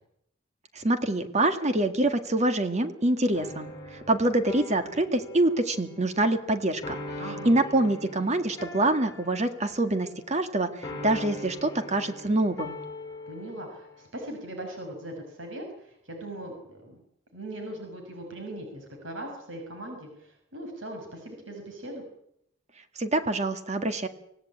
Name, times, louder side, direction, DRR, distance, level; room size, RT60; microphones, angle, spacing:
voice 1, 0.7-7.0 7.5-12.8 23.0-24.1, right 2 dB, 35° right, 8 dB, 1.9 m, -25 dB
sound 1, 3.3-10.5 10.8-14.1, left 1 dB, 25° left, 6.1 m, -42 dB
voice 2, 7.2-7.5 13.3-17.0 17.3-22.0, right 1 dB, 90° right, 3 dB, 6.0 m, -40 dB
26.0 x 17.0 x 8.7 m, 0.76 s
head